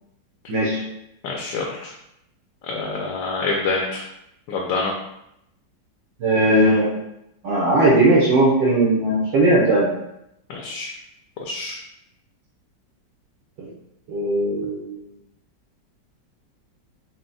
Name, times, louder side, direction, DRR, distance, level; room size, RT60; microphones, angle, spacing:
voice 1, 0.5-0.8 6.2-7.0 7.4-9.9 13.6-13.7 14.1-15.0, right 1 dB, 75° right, -4 dB, 1.3 m, -18 dB
voice 2, 1.2-1.9 2.6-4.0 4.5-4.9 10.5-10.9 11.4-11.8, left 3 dB, 80° left, 0 dB, 1.3 m, -26 dB
4.2 x 2.1 x 3.8 m, 0.82 s
omnidirectional pair, 2.0 m